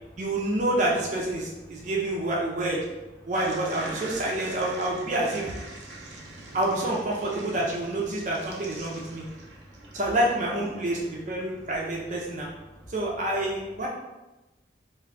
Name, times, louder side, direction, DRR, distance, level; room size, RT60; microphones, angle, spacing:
voice 1, 0.2-2.8 3.3-5.5 6.5-9.2 9.9-12.5 12.9-13.9, right 1 dB, 45° right, -3 dB, 0.4 m, -28 dB
sound 1, 3.3-11.9, right 2 dB, 85° right, 0.6 m, -44 dB
voice 2, 5.7-6.6 9.1-10.0 11.4-11.6 12.4-12.9, equal, 10° left, -7 dB, 0.8 m, -51 dB
2.5 x 2.2 x 3.8 m, 1.1 s
head